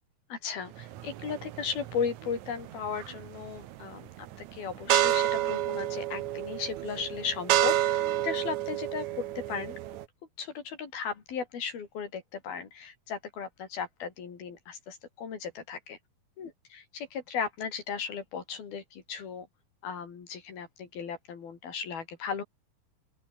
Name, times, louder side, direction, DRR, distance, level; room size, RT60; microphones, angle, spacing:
voice 1, 0.3-9.8 10.4-16.0 16.4-19.5 19.8-22.4, left 6 dB, 75° left, 5.5 m, -36 dB
sound 1, 0.8-10.0, right 13 dB, 65° right, 1.9 m, -30 dB
open air
omnidirectional pair, 4.4 m